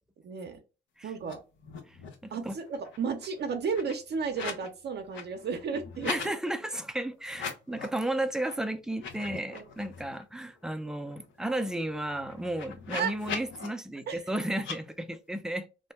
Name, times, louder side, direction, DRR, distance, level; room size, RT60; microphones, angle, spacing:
voice 1, 0.2-0.6 1.0-1.4 2.3-6.1 9.5-9.7 12.9-13.1 14.1-14.3, right 5 dB, 60° right, 0.6 m, -33 dB
sound 1, 1.2-1.3 1.6-2.3 2.6-4.7 5.0-6.3 7.3-8.0 8.4-8.5 8.9-10.2 10.6-10.7 11.0-13.7 14.6-14.8, left 6 dB, 90° left, 0.8 m, -41 dB
voice 2, 2.2-2.5 6.1-15.9, right 1 dB, 5° right, 0.4 m, -33 dB
2.6 x 2.1 x 3.3 m
cardioid pair, 90°, 19 cm